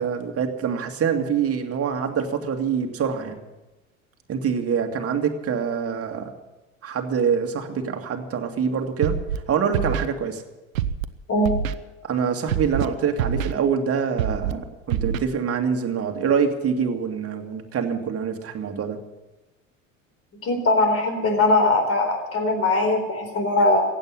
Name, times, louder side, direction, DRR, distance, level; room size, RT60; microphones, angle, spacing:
voice 1, 0.0-3.4 4.3-6.3 6.8-9.2 9.5-10.4 12.0-19.0, right 6 dB, 35° right, 5 dB, 2.2 m, -25 dB
Scratching (performance technique), 9.0-9.4 9.7-10.1 10.7-11.1 11.4-11.7 12.5-12.9 13.2-13.5 14.2-14.5 14.9-15.2, right 9 dB, 75° right, 0.9 m, -25 dB
voice 2, 20.4-23.8, left 2 dB, 35° left, 5 dB, 4.2 m, -20 dB
15.5 x 9.1 x 10.0 m, 1.1 s
hypercardioid pair, 75°, 40 cm